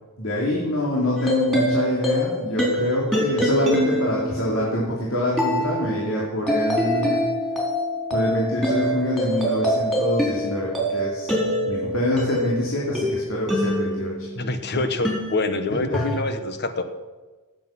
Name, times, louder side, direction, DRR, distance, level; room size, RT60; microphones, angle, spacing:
voice 1, 0.2-7.3 8.1-14.3 14.7-14.8 15.9-16.0, left 1 dB, 70° left, -4 dB, 2.8 m, -25 dB
sound 1, 1.2-14.5 15.0-16.2, equal, 5° left, 4.2 m, -25 dB
voice 2, 14.4-16.8, left 2 dB, 55° left, 9 dB, 1.2 m, -25 dB
17.5 x 8.0 x 5.8 m, 1.3 s
head